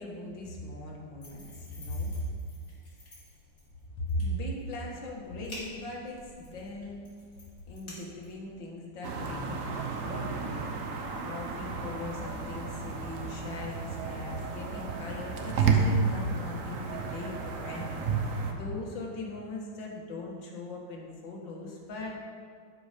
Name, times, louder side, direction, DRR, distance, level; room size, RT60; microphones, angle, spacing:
voice 1, 0.0-2.2 4.0-7.0 7.7-22.2, left 1 dB, 70° left, -2 dB, 2.1 m, -39 dB
sound 1, 1.2-8.6, left 2 dB, 50° left, 3.0 m, -51 dB
sound 2, 9.0-18.5, right 4 dB, 55° right, 1.0 m, -32 dB
11.5 x 5.5 x 5.1 m, 2.2 s
omnidirectional pair, 2.2 m